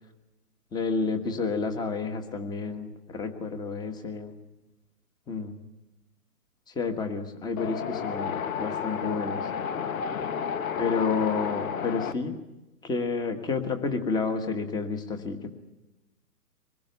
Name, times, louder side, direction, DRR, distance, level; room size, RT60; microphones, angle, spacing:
voice 1, 0.7-4.4 5.3-5.6 6.7-9.5 10.8-12.4 12.8-15.5, left 4 dB, 10° left, 7 dB, 1.5 m, -30 dB
Wind, 7.6-12.1, left 7 dB, 60° left, 1.5 m, -31 dB
24.5 x 21.0 x 8.2 m, 1.0 s
hypercardioid pair, 145°, 47 cm